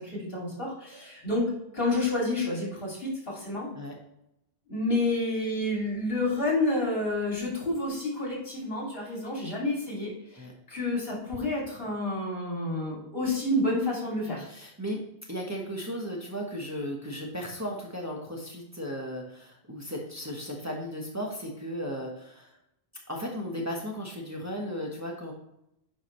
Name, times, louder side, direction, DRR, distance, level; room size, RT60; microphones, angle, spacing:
voice 1, 0.0-3.7 4.7-14.4, left 2 dB, 65° left, -3 dB, 3.0 m, -29 dB
voice 2, 14.5-15.0 15.3-22.5 23.1-25.3, equal, 15° right, -2 dB, 1.3 m, -35 dB
9.5 x 5.1 x 3.2 m, 0.81 s
omnidirectional pair, 1.0 m